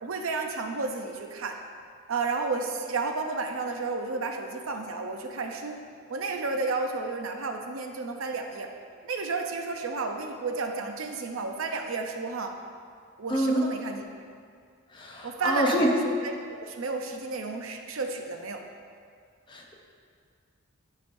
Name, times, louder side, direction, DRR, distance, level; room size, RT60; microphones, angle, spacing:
voice 1, 0.0-1.6 2.1-5.8 6.1-8.7 9.0-12.5 13.2-14.1 15.2-18.6, right 3 dB, 85° right, 4 dB, 0.6 m, -32 dB
voice 2, 13.3-13.7 14.9-15.9 19.5-19.7, equal, 25° left, -1 dB, 0.7 m, -26 dB
11.0 x 4.9 x 2.6 m, 2.1 s
head